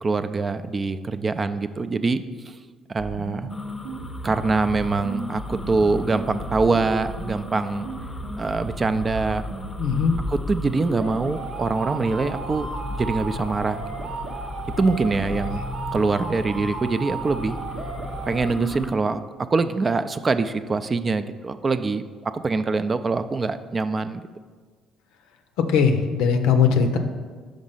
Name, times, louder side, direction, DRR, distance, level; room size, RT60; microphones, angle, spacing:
voice 1, 0.0-2.6 2.9-3.5 4.2-7.9 8.4-9.4 10.3-14.1 14.8-15.6 15.9-17.6 18.3-19.2 19.5-24.3, right 3 dB, 35° right, 11 dB, 0.4 m, -24 dB
sound 1, 3.0-19.0, right 3 dB, 80° right, 0.8 m, -34 dB
sound 2, 3.5-18.9, left 2 dB, 20° left, 0.6 m, -37 dB
voice 2, 9.8-10.2 15.5-15.6 25.6-27.0, left 6 dB, 80° left, 7 dB, 0.6 m, -20 dB
5.2 x 5.0 x 5.6 m, 1.5 s
supercardioid pair, 65°, 0 cm